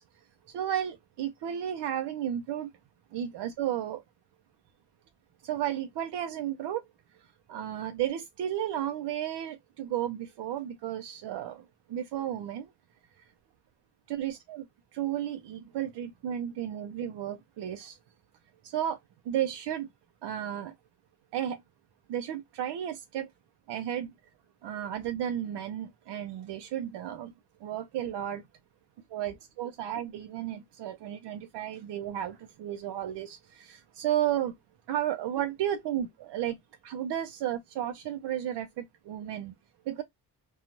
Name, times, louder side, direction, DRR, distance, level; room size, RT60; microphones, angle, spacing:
voice 1, 0.5-2.7 3.1-4.0 5.4-6.8 7.5-12.7 14.1-14.7 14.9-18.0 18.6-19.0 19.3-19.9 20.2-20.7 21.3-21.6 22.1-23.3 23.7-24.1 24.6-27.3 27.6-28.4 29.1-34.5 34.9-36.6 36.8-39.5 39.9-40.0, right 11 dB, 85° right, 0.5 m, -33 dB
2.6 x 2.3 x 2.8 m
wide cardioid pair, 155°, 41 cm